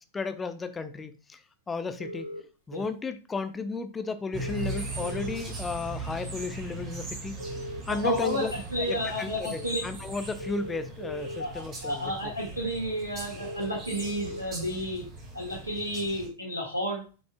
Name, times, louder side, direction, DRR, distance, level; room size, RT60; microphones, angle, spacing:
voice 1, 0.1-1.4 1.7-2.3 2.7-7.4 7.9-8.5 8.9-12.1, left 4 dB, 15° left, 0.8 m, -34 dB
sound 1, 2.0-2.4 4.4-5.4 7.4-8.4 10.4-11.4 13.4-14.4, left 1 dB, 85° left, 2.0 m, -38 dB
sound 2, 4.3-16.3, right 2 dB, 30° right, 2.6 m, -39 dB
voice 2, 7.9-9.8 11.4-15.0 15.3-17.0, equal, 80° right, 2.0 m, -31 dB
9.2 x 5.2 x 2.3 m
figure-of-eight pair, 90°, 0 cm